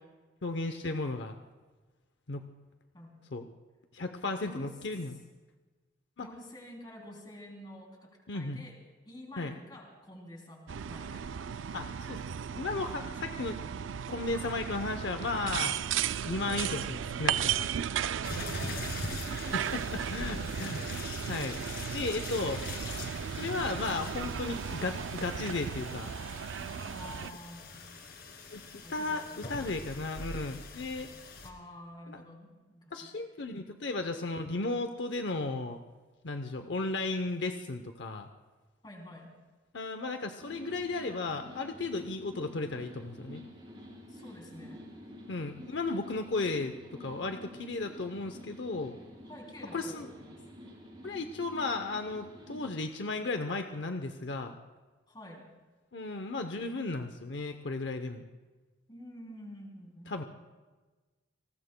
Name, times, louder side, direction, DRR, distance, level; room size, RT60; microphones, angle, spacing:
voice 1, 0.4-1.4 2.3-2.4 3.3-3.5 3.9-5.2 6.2-6.3 8.3-8.6 9.4-9.6 11.7-12.2 12.6-13.6 14.1-15.8 16.3-17.6 19.7-20.8 21.3-21.6 21.9-22.6 23.4-26.1 28.5-28.6 28.9-31.1 32.1-32.2 32.9-35.8 36.2-38.3 39.7-43.4 45.3-48.9 49.7-50.1 51.0-54.6 55.9-58.2 60.1-60.2, left 3 dB, 70° left, 7 dB, 0.7 m, -35 dB
voice 2, 2.9-3.2 4.4-4.7 6.2-8.8 9.0-11.2 17.9-21.0 23.6-23.8 26.8-27.8 28.8-29.3 31.4-33.2 38.8-39.4 44.1-44.9 49.3-50.4 55.1-55.5 58.9-60.1, left 1 dB, 25° left, 0 dB, 3.1 m, -49 dB
sound 1, 10.7-27.3, right 8 dB, 90° right, 0.4 m, -35 dB
sound 2, 18.2-31.5, left 3 dB, 55° left, 2.2 m, -43 dB
sound 3, 40.4-52.6, left 1 dB, 30° right, 5.0 m, -49 dB
28.5 x 19.5 x 2.2 m, 1.3 s
head